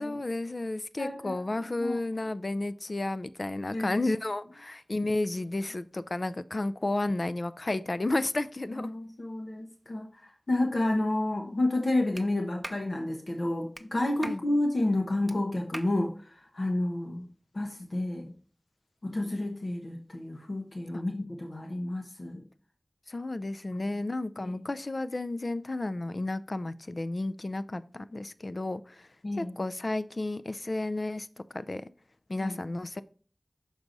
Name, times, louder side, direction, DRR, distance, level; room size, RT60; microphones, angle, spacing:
voice 1, 0.0-8.9 14.2-14.4 23.1-29.1 29.4-31.3 31.5-31.9 32.3-33.0, left 2 dB, 60° left, 0.4 m, -32 dB
voice 2, 1.0-2.0 3.7-4.0 8.8-17.2 17.5-18.3 19.0-22.4 23.7-23.8 24.4-24.6 29.2-29.5 32.4-32.5, left 1 dB, 75° left, 1.1 m, -30 dB
Clapping, 12.2-12.3 12.6-12.9 13.7-13.9 14.2-14.4 15.3-15.4 15.7-15.9, right 1 dB, 20° right, 0.5 m, -40 dB
6.5 x 4.7 x 3.9 m
wide cardioid pair, 45°, 0 cm